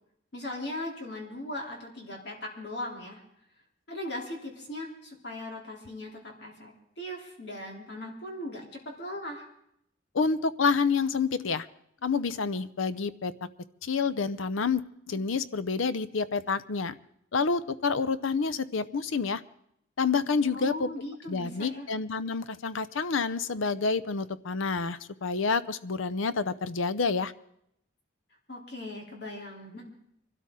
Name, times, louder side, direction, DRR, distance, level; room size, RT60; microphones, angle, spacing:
voice 1, 0.3-3.2 3.9-9.5 20.4-21.9 28.5-29.9, left 1 dB, 55° left, 0 dB, 3.2 m, -39 dB
voice 2, 10.1-11.7 12.0-13.3 13.8-14.8 15.1-17.0 17.3-19.4 20.0-20.9 21.3-27.3, left 4 dB, 85° left, 15 dB, 0.6 m, -28 dB
23.5 x 12.5 x 3.7 m, 0.74 s
head